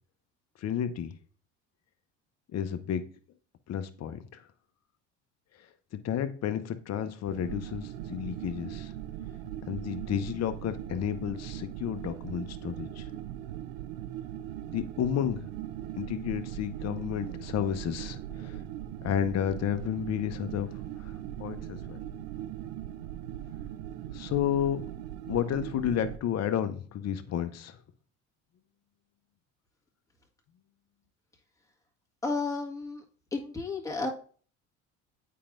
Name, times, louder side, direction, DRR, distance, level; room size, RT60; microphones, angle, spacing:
voice 1, 0.6-1.1 2.5-3.0 3.7-4.4 5.6-8.9 9.7-13.1 14.7-15.5 16.0-18.6 19.0-22.0 24.1-24.8 25.3-27.8, left 9 dB, 45° left, 9 dB, 0.9 m, -32 dB
sound 1, 7.3-26.2, right 11 dB, 75° right, 0.5 m, -40 dB
voice 2, 32.2-33.0 33.3-34.1, left 3 dB, 10° left, -1 dB, 1.7 m, -32 dB
8.5 x 4.6 x 2.6 m, 0.43 s
hypercardioid pair, 70°, 36 cm